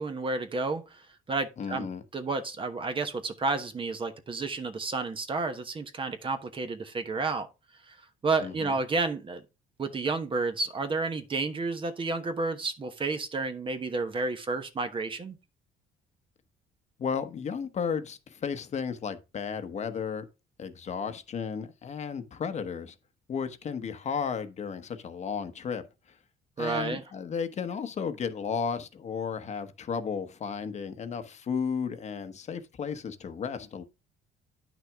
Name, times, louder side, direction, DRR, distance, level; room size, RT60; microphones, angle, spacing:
voice 1, 0.0-1.9 2.1-7.5 7.9-8.0 8.2-9.4 9.8-15.3 26.6-27.0, right 3 dB, 30° right, 1.1 m, -31 dB
voice 2, 1.6-2.0 8.4-8.7 17.0-20.2 20.6-22.9 23.3-25.8 26.6-33.8, left 6 dB, 40° left, 1.1 m, -34 dB
9.9 x 6.1 x 3.5 m
cardioid pair, 110°, 17 cm